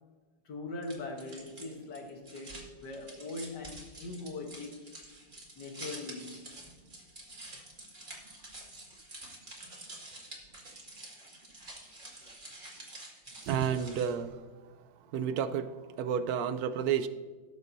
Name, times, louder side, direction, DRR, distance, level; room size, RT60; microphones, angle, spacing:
voice 1, 0.5-4.8 5.6-6.5, left 2 dB, 60° left, 3 dB, 1.7 m, -41 dB
sound 1, 0.8-14.3, right 2 dB, 25° right, 2.1 m, -48 dB
voice 2, 13.5-17.1, right 8 dB, 75° right, 11 dB, 0.9 m, -32 dB
18.0 x 7.1 x 2.7 m, 1.3 s
omnidirectional pair, 2.1 m